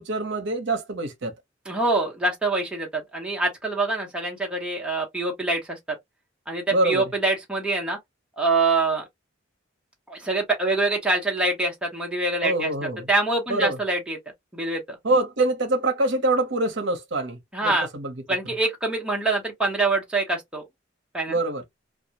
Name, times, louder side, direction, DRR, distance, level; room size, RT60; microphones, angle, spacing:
voice 1, 0.0-1.3 6.7-7.1 12.4-13.1 13.5-13.8 15.0-18.1 21.3-21.6, right 2 dB, 65° right, 0.7 m, -25 dB
voice 2, 1.7-5.8 6.5-8.0 8.4-9.1 10.1-12.7 13.1-14.2 14.5-14.8 17.5-17.9 18.3-20.6 21.1-21.4, right 2 dB, 5° right, 0.7 m, -25 dB
2.2 x 2.0 x 2.7 m
head